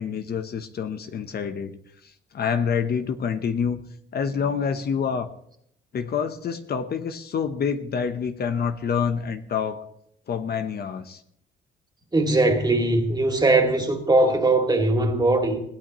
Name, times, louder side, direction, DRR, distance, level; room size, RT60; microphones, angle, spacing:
voice 1, 0.0-3.8 4.1-5.3 5.9-9.8 10.3-11.2, left 6 dB, 55° left, 1.0 m, -27 dB
voice 2, 12.1-15.6, right 2 dB, 20° right, 2.6 m, -20 dB
21.0 x 15.0 x 3.1 m
cardioid pair, 90°, 20 cm